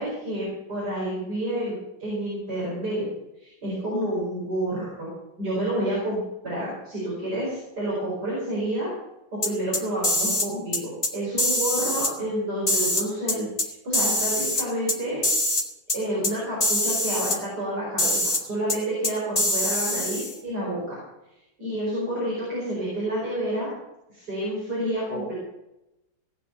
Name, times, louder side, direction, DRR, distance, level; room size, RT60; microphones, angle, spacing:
voice 1, 0.0-3.1 3.4-5.1 5.4-8.9 9.3-15.2 15.9-21.0 21.6-23.7 24.1-25.3, right 1 dB, 60° right, -6 dB, 5.8 m, -29 dB
sound 1, 9.4-10.5 10.7-11.1 11.4-12.1 12.7-13.7 13.9-15.0 15.2-15.6 15.9-16.0 16.2-16.3 16.6-17.4 18.0-18.4 18.7-18.8 19.0-20.4, left 1 dB, 20° left, 1.5 m, -24 dB
18.0 x 6.1 x 8.5 m, 0.91 s
omnidirectional pair, 1.9 m